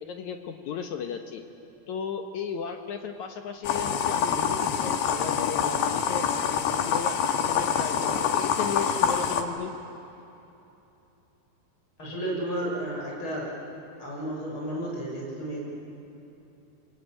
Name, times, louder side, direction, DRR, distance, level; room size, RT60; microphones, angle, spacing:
voice 1, 0.0-1.4 1.9-6.3 6.6-9.7, left 6 dB, 65° left, 5 dB, 2.0 m, -35 dB
sound 1, 3.6-9.4, left 7 dB, 85° left, 3.4 m, -26 dB
voice 2, 12.0-13.5 14.0-15.7, right 1 dB, 30° left, -3 dB, 7.6 m, -32 dB
28.5 x 23.0 x 9.0 m, 2.9 s
omnidirectional pair, 4.5 m